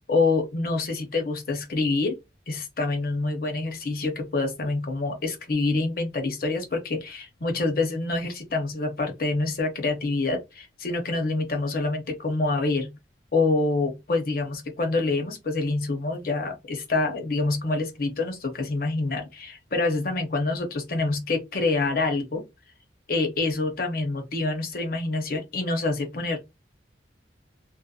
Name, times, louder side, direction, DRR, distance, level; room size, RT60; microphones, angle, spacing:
voice 1, 0.1-2.2 2.5-13.0 13.3-22.4 23.1-26.4, left 3 dB, 50° left, 0.6 m, -26 dB
2.7 x 2.0 x 2.3 m
head